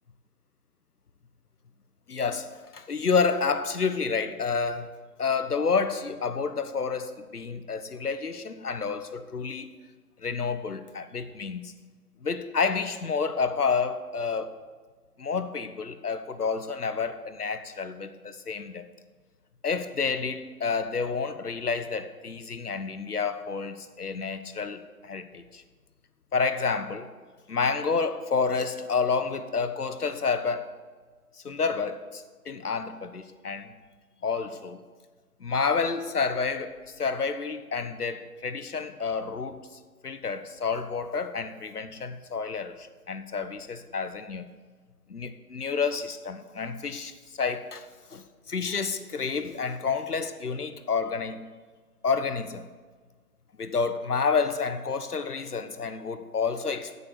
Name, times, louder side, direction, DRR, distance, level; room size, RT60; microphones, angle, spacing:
voice 1, 2.1-4.9 5.2-9.7 10.2-11.7 12.2-14.5 15.2-18.9 19.6-25.6 26.3-27.1 27.5-30.7 31.4-33.7 34.2-34.8 35.4-44.5 45.1-51.5 52.0-52.7 53.6-57.0, left 5 dB, 85° left, 1.3 m, -29 dB
15.0 x 7.1 x 6.7 m
hypercardioid pair, 165°, 45 cm